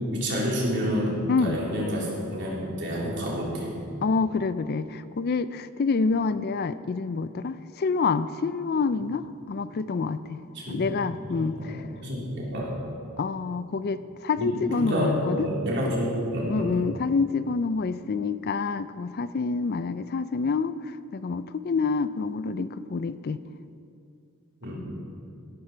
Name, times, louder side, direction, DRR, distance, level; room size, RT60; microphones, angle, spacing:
voice 1, 0.1-3.7 10.5-10.9 11.3-11.7 12.0-12.7 14.4-16.8 24.6-24.8, equal, 50° right, -4 dB, 3.7 m, -28 dB
voice 2, 4.0-10.4 10.7-11.8 13.2-15.5 16.5-20.7 21.1-23.4, left 4 dB, 45° left, 14 dB, 0.4 m, -27 dB
17.0 x 12.5 x 4.5 m, 2.5 s
head